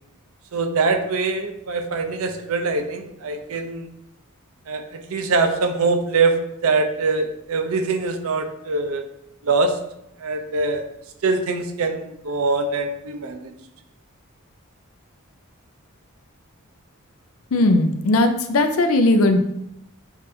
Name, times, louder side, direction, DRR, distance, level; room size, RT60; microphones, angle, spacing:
voice 1, 0.5-3.9 4.7-6.4 6.6-9.0 9.4-9.8 10.2-10.8 11.2-13.5, right 3 dB, 75° right, 6 dB, 0.6 m, -23 dB
voice 2, 17.5-19.4, left 2 dB, 70° left, 7 dB, 0.5 m, -18 dB
7.2 x 2.6 x 2.7 m, 0.81 s
head